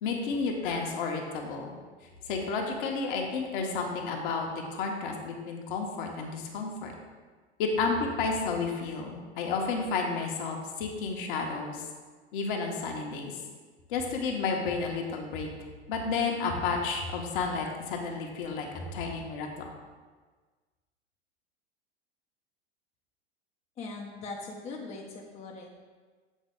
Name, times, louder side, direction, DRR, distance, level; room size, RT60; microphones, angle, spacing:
voice 1, 0.0-1.8 2.3-6.9 7.6-11.8 12.3-13.3 13.9-15.5 15.9-19.7, left 4 dB, 50° left, 2 dB, 1.0 m, -31 dB
voice 2, 23.8-25.8, left 3 dB, 20° left, -1 dB, 0.6 m, -41 dB
7.4 x 3.9 x 3.6 m, 1.4 s
figure-of-eight pair, 90°, 34 cm